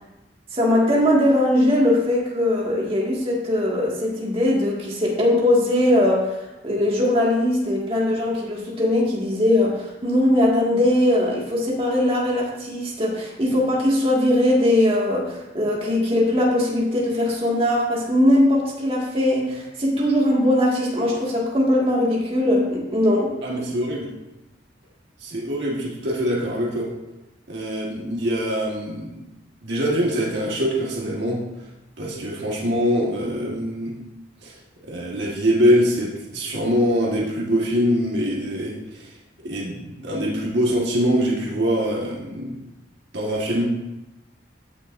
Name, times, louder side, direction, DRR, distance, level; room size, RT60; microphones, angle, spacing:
voice 1, 0.5-6.4 6.6-23.3, left 1 dB, 30° right, -3 dB, 2.0 m, -20 dB
voice 2, 23.4-24.1 25.2-26.9 27.5-29.2 29.6-31.4 32.0-33.9 34.4-34.6 34.8-39.1 39.4-42.6 43.1-43.8, equal, 65° right, -4 dB, 1.6 m, -23 dB
15.0 x 6.2 x 2.6 m, 0.99 s
head